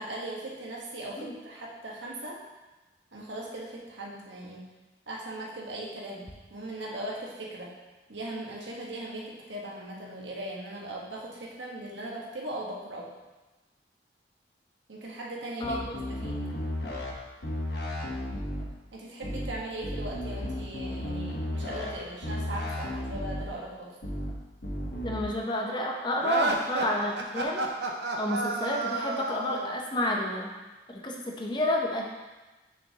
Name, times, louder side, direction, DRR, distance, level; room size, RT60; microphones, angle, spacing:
voice 1, 0.0-2.4 3.1-4.7 5.1-7.8 8.1-13.1 14.9-16.4 18.9-24.0, right 1 dB, 85° right, -3 dB, 1.3 m, -39 dB
sound 1, 15.6-17.1 17.4-18.6 19.2-19.5 19.8-21.9 22.2-23.4 24.0-24.3 24.6-25.2, left 1 dB, 65° left, 1.1 m, -34 dB
voice 2, 25.0-27.6 28.2-30.5 30.9-32.1, left 1 dB, 25° left, 0 dB, 0.7 m, -30 dB
sound 2, 26.2-29.8, right 2 dB, 70° right, 0.7 m, -31 dB
6.7 x 6.3 x 2.9 m, 1.2 s
head